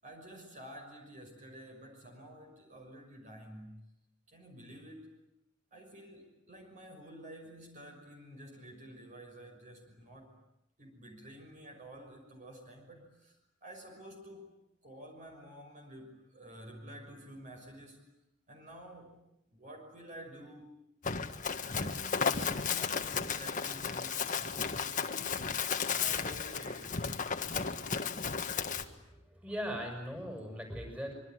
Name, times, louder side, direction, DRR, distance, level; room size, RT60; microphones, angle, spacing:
voice 1, 0.0-3.8 4.3-5.1 5.7-10.3 10.8-13.4 13.6-14.5 14.8-18.0 18.5-19.2 19.5-20.7 21.8-27.1, right 1 dB, 40° right, 3 dB, 6.2 m, -50 dB
Run, 21.0-28.8, left 6 dB, 40° left, 1.7 m, -34 dB
voice 2, 28.7-31.1, equal, 10° right, 3 dB, 6.4 m, -40 dB
25.5 x 24.0 x 9.5 m, 0.82 s
head